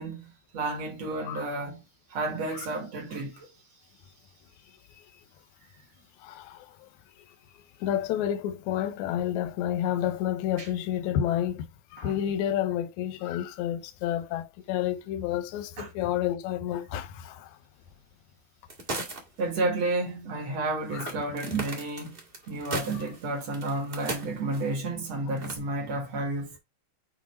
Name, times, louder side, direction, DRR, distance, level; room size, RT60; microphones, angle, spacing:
voice 1, 0.0-1.8 2.1-3.5 10.6-10.7 12.0-12.1 15.8-15.9 19.4-22.2 22.5-26.6, right 2 dB, 55° right, 2.3 m, -31 dB
voice 2, 6.2-6.9 7.2-7.3 7.5-17.6 20.9-21.1 21.5-21.6 22.9-23.0, left 11 dB, 75° left, 1.7 m, -30 dB
sound 1, 18.7-19.4 19.7-19.8 21.0-24.7 25.4-25.6, right 2 dB, 30° right, 1.1 m, -37 dB
7.9 x 2.8 x 4.3 m
omnidirectional pair, 4.3 m